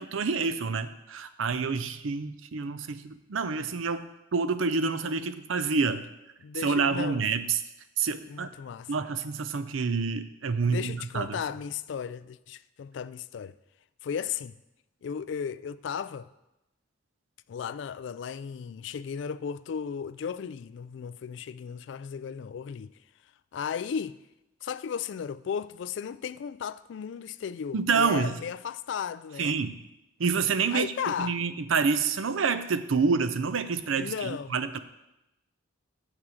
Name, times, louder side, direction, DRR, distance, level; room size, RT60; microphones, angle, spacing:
voice 1, 0.0-6.0 6.6-7.6 8.0-8.5 8.9-11.4 27.7-28.3 29.4-29.8 30.2-30.9 31.2-34.8, right 5 dB, 80° right, 0.6 m, -28 dB
voice 2, 6.4-7.2 8.3-8.9 10.6-13.5 14.0-14.6 15.0-16.3 17.5-22.9 23.5-24.2 24.6-29.6 30.7-31.4 34.0-34.5, left 7 dB, 65° left, 0.3 m, -35 dB
7.7 x 6.0 x 6.3 m
head